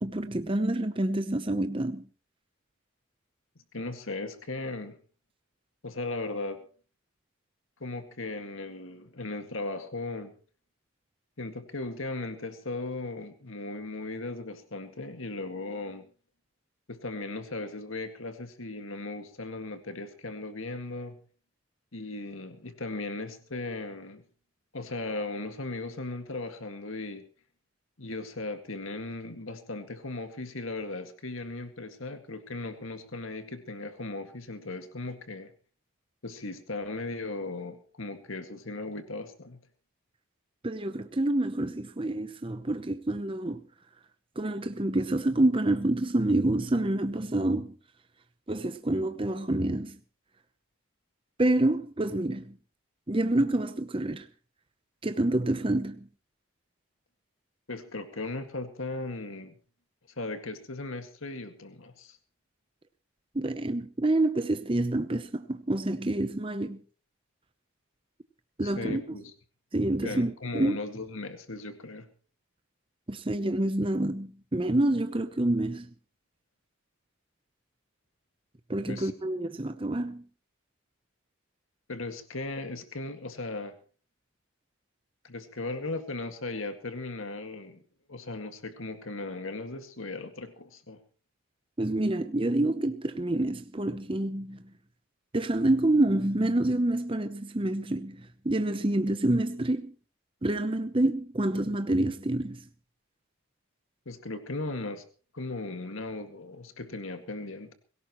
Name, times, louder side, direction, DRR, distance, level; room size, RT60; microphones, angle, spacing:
voice 1, 0.0-2.1 40.6-43.6 44.4-47.7 48.5-50.0 51.4-52.5 53.1-54.3 55.0-56.0 63.3-66.8 68.6-69.0 69.7-70.8 73.1-75.9 78.7-80.2 91.8-94.6 95.3-99.9 100.4-102.6, right 1 dB, 25° right, 0.7 m, -27 dB
voice 2, 3.7-5.0 5.8-6.7 7.8-10.3 11.4-16.1 16.9-21.2 21.9-24.2 24.7-27.2 28.0-35.5 36.2-39.6 57.7-59.6 60.2-62.2 68.6-69.3 70.0-72.1 78.9-79.1 81.9-83.8 85.2-87.8 88.1-91.0 104.1-105.0 105.3-107.7, left 2 dB, 70° left, 2.0 m, -37 dB
22.0 x 17.5 x 3.1 m
head